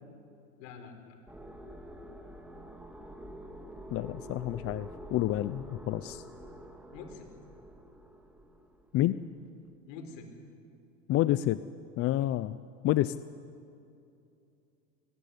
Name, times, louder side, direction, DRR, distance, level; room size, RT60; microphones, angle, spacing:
voice 1, 0.6-1.2 6.9-7.3 9.9-10.3, left 5 dB, 70° left, 6 dB, 4.8 m, -46 dB
sound 1, 1.3-9.1, equal, 5° right, 2.1 m, -47 dB
voice 2, 3.9-6.2 8.9-9.2 11.1-11.6 12.0-12.6 12.8-13.2, left 14 dB, 40° left, 14 dB, 0.6 m, -29 dB
22.0 x 19.5 x 9.8 m, 2.6 s
supercardioid pair, 115°, 39 cm